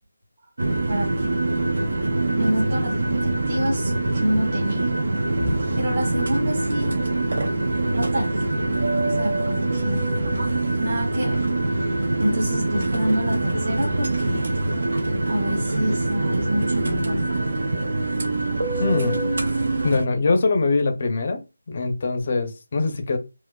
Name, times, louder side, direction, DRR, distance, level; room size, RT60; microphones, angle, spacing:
sound 1, 0.6-20.0, right 2 dB, 60° right, 0.6 m, -24 dB
voice 1, 0.9-1.3 2.3-4.9 5.3-6.9 8.0-8.4 9.0-10.2 10.8-14.5 15.3-17.2, equal, 35° right, -5 dB, 1.6 m, -28 dB
voice 2, 18.8-19.2 19.8-21.4 21.7-23.2, left 3 dB, 35° left, 6 dB, 0.5 m, -22 dB
4.4 x 2.1 x 2.2 m, 0.27 s
figure-of-eight pair, 175°, 0 cm